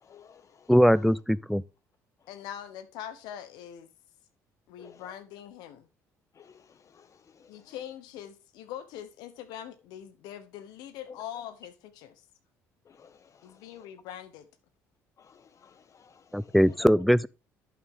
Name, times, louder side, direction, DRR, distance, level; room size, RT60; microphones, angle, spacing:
voice 1, 0.0-0.7 4.8-5.0 6.3-7.7 11.1-11.2 12.9-13.6 15.2-16.6, left 6 dB, 45° left, 1.3 m, -55 dB
voice 2, 0.7-1.6 16.3-17.3, equal, ahead, 0.5 m, -21 dB
voice 3, 2.3-3.9 4.7-5.9 7.5-12.2 13.4-14.5, left 10 dB, 70° left, 1.1 m, -43 dB
11.0 x 6.0 x 3.8 m
hypercardioid pair, 55°, 7 cm